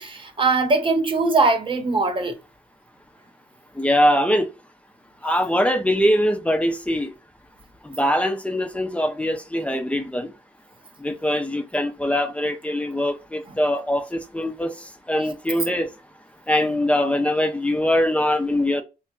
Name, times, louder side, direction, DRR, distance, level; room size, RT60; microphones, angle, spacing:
voice 1, 0.0-2.4, right 3 dB, 35° right, 1.0 m, -21 dB
voice 2, 3.8-4.5 5.2-7.1 7.8-10.3 11.0-14.7 15.1-15.9 16.5-18.8, equal, 10° left, 0.6 m, -22 dB
3.5 x 2.3 x 4.3 m
cardioid pair, 95°, 14 cm